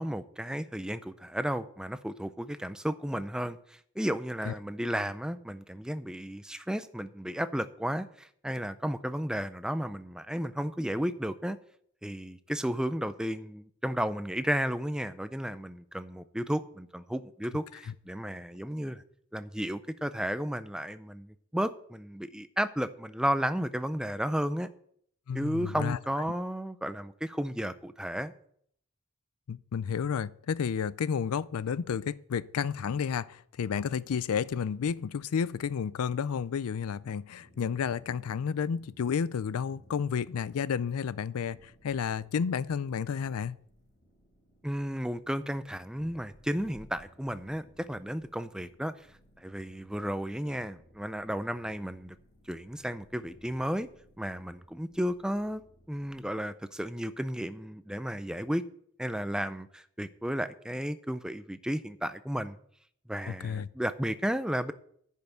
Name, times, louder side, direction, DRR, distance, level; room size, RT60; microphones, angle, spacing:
voice 1, 0.0-11.6 12.0-19.0 19.3-24.7 25.3-28.3 44.6-48.9 49.4-52.2 52.5-53.9 54.2-55.6 55.9-58.6 59.0-62.6 63.1-64.7, equal, 5° right, 0.4 m, -33 dB
voice 2, 25.3-26.0 29.5-43.6 63.3-63.7, left 7 dB, 85° left, 0.4 m, -31 dB
sound 1, 36.8-56.2, equal, 60° left, 5.1 m, -60 dB
10.5 x 5.6 x 7.9 m
head